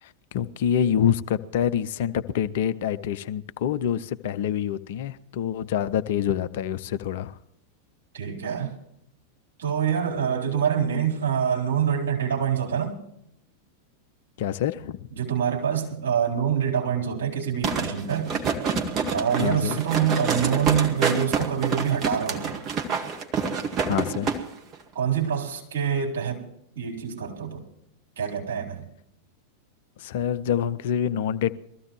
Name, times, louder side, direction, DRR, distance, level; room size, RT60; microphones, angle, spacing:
voice 1, 0.0-7.4 14.4-15.0 19.4-19.8 23.9-24.3 30.0-31.5, left 9 dB, 55° left, 13 dB, 0.6 m, -26 dB
voice 2, 8.1-8.7 9.6-13.0 15.1-18.4 19.1-22.6 24.9-26.4 26.8-27.6 28.2-28.9, right 8 dB, 60° right, -2 dB, 4.0 m, -25 dB
sound 1, 17.6-24.4 24.7-24.8, right 5 dB, 30° right, 1.8 m, -27 dB
22.0 x 14.5 x 3.2 m, 0.76 s
figure-of-eight pair, 90°, 0 cm